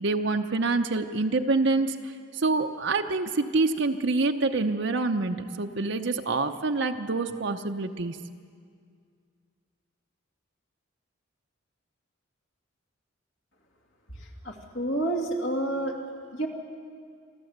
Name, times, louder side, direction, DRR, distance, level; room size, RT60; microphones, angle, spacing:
voice 1, 0.0-8.2, right 3 dB, 55° right, 5 dB, 0.7 m, -26 dB
voice 2, 14.2-16.0 16.3-16.5, right 1 dB, 65° left, 1 dB, 2.6 m, -29 dB
27.0 x 13.0 x 8.0 m, 2.2 s
head